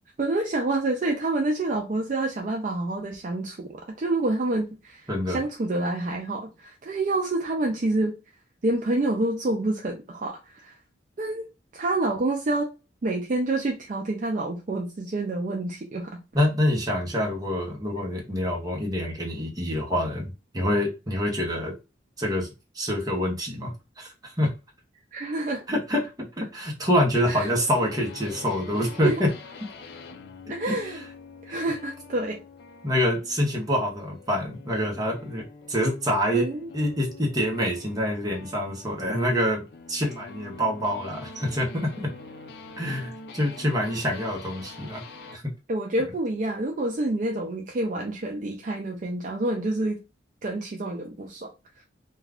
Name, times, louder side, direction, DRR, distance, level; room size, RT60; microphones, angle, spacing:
voice 1, 0.2-8.2 8.6-10.8 11.2-11.5 11.7-12.7 13.0-16.2 25.1-25.6 27.3-27.5 29.0-29.2 30.5-31.0 31.4-32.4 36.3-36.7 45.7-50.0 50.4-51.5, right 2 dB, 40° right, 0.4 m, -28 dB
voice 2, 5.1-5.4 16.3-21.7 22.2-22.5 22.7-24.5 25.7-29.3 30.7-31.0 31.5-31.6 32.8-36.5 36.7-41.9 42.8-45.0 45.3-45.4, equal, 20° right, 0.7 m, -26 dB
sound 1, 27.2-45.4, left 3 dB, 55° left, 0.4 m, -45 dB
2.3 x 2.3 x 3.3 m
head